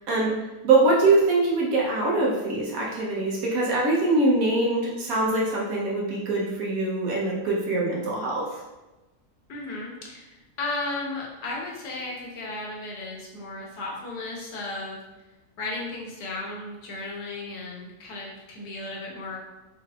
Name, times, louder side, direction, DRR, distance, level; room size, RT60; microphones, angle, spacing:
voice 1, 0.6-8.5, right 2 dB, 65° right, -4 dB, 1.3 m, -23 dB
voice 2, 9.5-15.0 15.6-19.4, left 2 dB, 90° left, -2 dB, 1.5 m, -35 dB
5.1 x 3.3 x 2.4 m, 1.1 s
omnidirectional pair, 1.7 m